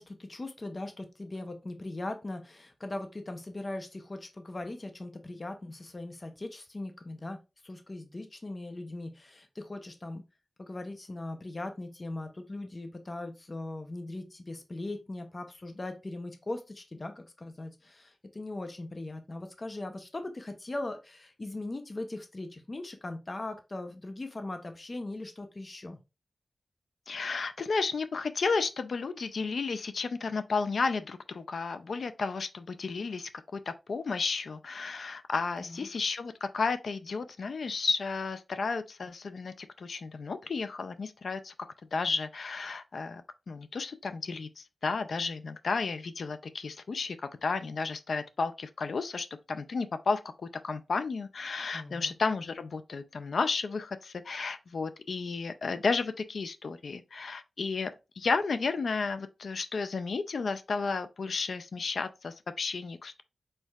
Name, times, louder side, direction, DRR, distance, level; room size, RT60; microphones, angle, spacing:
voice 1, 0.0-7.4 7.6-10.2 10.6-26.0 35.6-35.9 51.7-52.1, left 2 dB, 35° left, 0.6 m, -39 dB
voice 2, 27.1-41.5 41.9-43.2 43.5-47.2 47.4-50.2 50.6-63.2, left 4 dB, 75° left, 0.4 m, -32 dB
4.5 x 4.5 x 2.3 m
wide cardioid pair, 85°, 0 cm